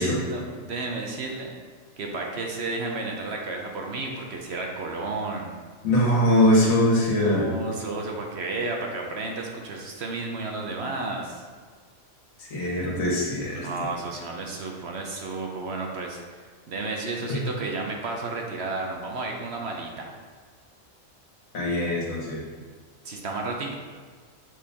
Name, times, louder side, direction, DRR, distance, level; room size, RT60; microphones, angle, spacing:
voice 1, 0.0-1.5 2.0-5.5 7.2-11.4 13.5-16.2 16.7-20.1 23.0-23.7, right 3 dB, 55° right, 1 dB, 0.9 m, -32 dB
voice 2, 5.8-7.4 12.5-13.7 17.3-17.4 21.5-22.4, left 1 dB, 75° left, -5 dB, 2.0 m, -22 dB
7.5 x 4.3 x 3.5 m, 1.5 s
omnidirectional pair, 1.4 m